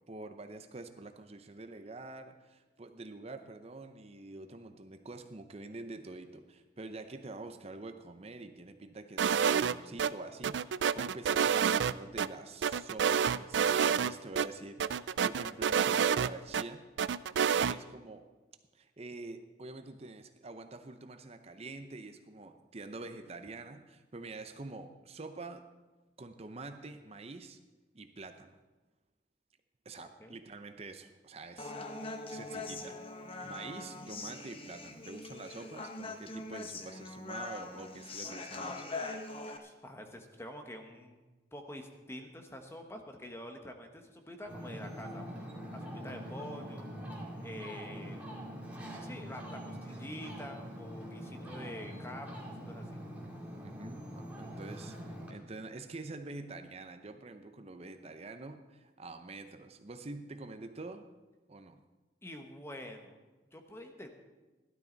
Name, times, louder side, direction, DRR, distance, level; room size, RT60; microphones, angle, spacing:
voice 1, 0.1-16.9 17.5-18.3 18.7-25.7 26.2-27.6 27.9-28.6 29.8-31.7 32.3-39.4 51.2-52.0 53.6-55.0 55.3-61.1 61.5-61.8, right 3 dB, 35° right, 8 dB, 0.7 m, -46 dB
sound 1, 9.2-10.1 10.4-12.3 12.6-14.1 14.4-14.5 14.8-16.6 17.0-17.7, right 7 dB, 85° right, 0.4 m, -28 dB
voice 2, 30.0-30.4 39.6-41.2 41.5-46.9 47.4-48.2 49.0-53.0 62.2-63.2 63.5-64.1, left 1 dB, 15° left, 4 dB, 1.3 m, -47 dB
Human voice, 31.6-39.6, left 3 dB, 30° left, 1.0 m, -42 dB
Ocean, 44.5-55.3, equal, 10° right, 2.3 m, -44 dB
16.5 x 12.0 x 4.0 m, 1.2 s
head